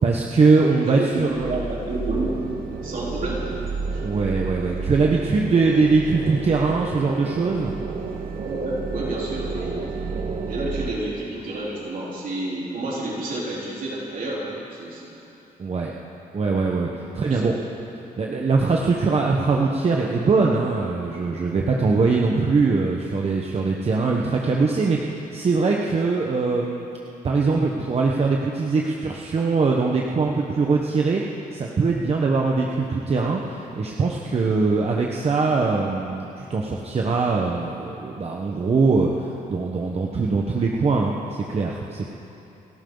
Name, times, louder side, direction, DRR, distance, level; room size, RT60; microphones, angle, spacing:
voice 1, 0.0-1.5 4.0-7.8 15.6-15.9 16.3-16.9 17.1-17.5 18.2-26.9 27.2-31.2 31.5-33.4 33.8-39.1 39.5-42.1, right 4 dB, 45° right, -1 dB, 1.2 m, -22 dB
voice 2, 0.8-2.4 2.8-3.5 3.9-4.0 8.4-10.0 10.5-15.2 17.1-17.5, right 2 dB, 65° right, -5 dB, 3.9 m, -30 dB
sound 1, 1.2-10.9, right 4 dB, 90° right, 1.6 m, -31 dB
29.5 x 12.5 x 4.0 m, 2.9 s
cardioid pair, 120°, 15 cm